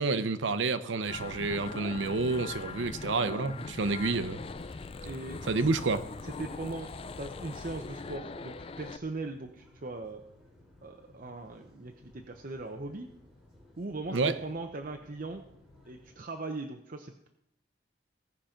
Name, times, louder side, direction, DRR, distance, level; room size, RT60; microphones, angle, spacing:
voice 1, 0.0-4.4 5.5-6.1 14.1-14.3, right 3 dB, 90° right, 0.8 m, -29 dB
sound 1, 1.1-9.0, left 4 dB, 30° left, 0.4 m, -41 dB
sound 2, 2.4-16.2, left 1 dB, 5° right, 5.8 m, -58 dB
voice 2, 5.0-5.7 6.2-6.9 7.2-10.2 10.8-13.1 13.8-15.4 15.9-17.3, right 2 dB, 45° right, 0.7 m, -39 dB
17.0 x 5.9 x 5.1 m
head